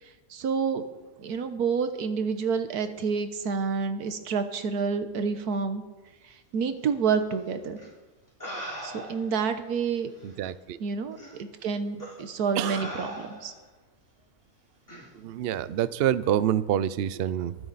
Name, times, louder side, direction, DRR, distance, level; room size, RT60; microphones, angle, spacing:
voice 1, 0.3-0.8 1.2-5.8 6.5-7.8 8.8-10.1 10.8-13.5, right 5 dB, 85° right, 9 dB, 1.5 m, -28 dB
sound 1, 7.8-7.9 8.4-9.4 10.2-10.3 11.2-11.4 12.0-12.2 12.6-13.6 14.9-15.1, equal, 10° left, 3.3 m, -39 dB
voice 2, 10.2-10.8 12.5-12.9 15.1-17.6, right 11 dB, 70° right, 16 dB, 0.5 m, -27 dB
23.0 x 7.9 x 4.1 m, 1.2 s
omnidirectional pair, 1.6 m